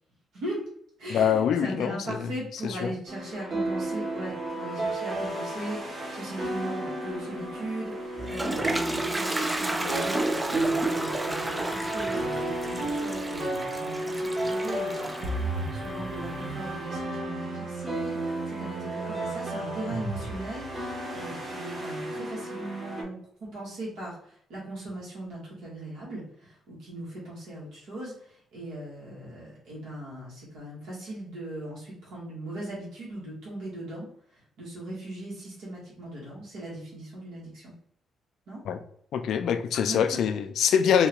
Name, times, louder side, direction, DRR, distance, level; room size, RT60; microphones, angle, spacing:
voice 1, 0.3-0.6 1.0-37.7 38.5-38.6 39.7-40.2, right 1 dB, 85° right, 1.3 m, -39 dB
voice 2, 1.1-2.3 2.8-2.9 38.7-38.8 39.1-41.1, left 8 dB, 75° left, 0.3 m, -24 dB
sound 1, 3.1-23.0, right 1 dB, 40° right, 1.2 m, -33 dB
Toilet flush, 7.9-16.8, right 2 dB, 15° right, 0.3 m, -33 dB
sound 2, 15.2-21.2, right 3 dB, 60° right, 0.8 m, -37 dB
3.6 x 2.4 x 2.9 m
cardioid pair, 90°, 0 cm